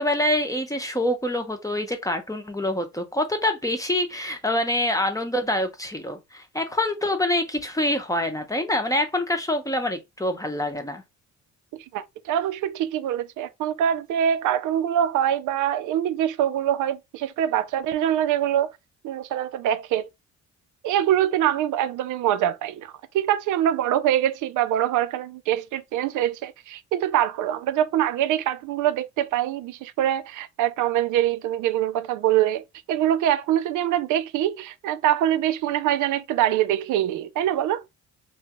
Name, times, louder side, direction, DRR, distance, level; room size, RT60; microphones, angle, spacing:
voice 1, 0.0-11.0, left 1 dB, 10° left, 0.7 m, -25 dB
voice 2, 11.9-18.7 19.0-20.1 20.8-37.8, right 11 dB, 80° right, 0.5 m, -24 dB
3.0 x 2.3 x 2.9 m
cardioid pair, 90°, 30 cm